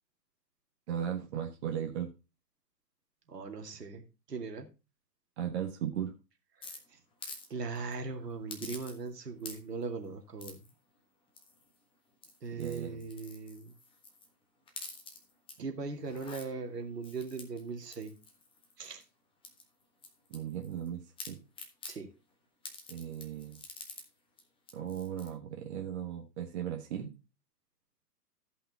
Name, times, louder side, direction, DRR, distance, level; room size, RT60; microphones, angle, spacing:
voice 1, 0.9-2.1 5.4-6.1 12.6-12.9 20.3-21.4 22.9-23.6 24.7-27.2, right 9 dB, 40° right, 3 dB, 1.5 m, -37 dB
voice 2, 3.3-4.7 6.6-6.8 7.5-10.7 12.4-13.7 15.6-18.1 18.8-19.0 21.9-22.1, right 4 dB, 70° right, 5 dB, 2.4 m, -39 dB
sound 1, 6.6-7.5 7.8-7.9 8.5-9.1 9.4-9.8 10.4-10.7 11.4-11.8 12.1-14.3 14.7-15.6 16.0-16.5 17.0-19.0 19.4-20.9 21.2-22.0 22.6-24.1 24.4-24.5 24.7-25.3, left 3 dB, 10° left, 1.3 m, -48 dB
14.0 x 5.6 x 4.1 m, 0.29 s
figure-of-eight pair, 125°, 49 cm